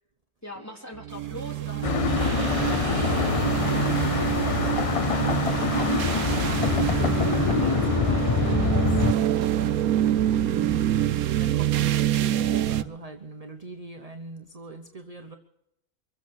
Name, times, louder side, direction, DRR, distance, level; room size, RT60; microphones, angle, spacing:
voice 1, 0.4-4.8, equal, 10° left, 0 dB, 2.8 m, -43 dB
sound 1, 0.6-11.6, right 9 dB, 65° right, 1.4 m, -39 dB
sound 2, 1.0-12.8, right 12 dB, 80° right, 1.2 m, -26 dB
sound 3, 1.8-9.1, left 6 dB, 60° left, 0.3 m, -25 dB
voice 2, 5.0-15.4, right 5 dB, 30° right, 6 dB, 0.9 m, -41 dB
24.5 x 8.3 x 6.5 m, 0.84 s
omnidirectional pair, 1.5 m